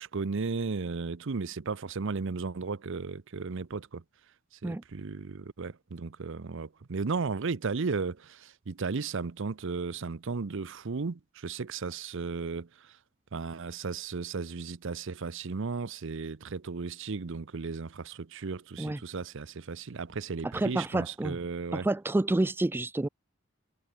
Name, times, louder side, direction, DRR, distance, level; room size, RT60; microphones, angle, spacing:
voice 1, 0.0-4.0 4.6-13.0 13.3-21.9, right 4 dB, 65° right, 0.7 m, -35 dB
voice 2, 20.4-21.4 21.7-23.1, right 2 dB, 10° right, 0.3 m, -29 dB
head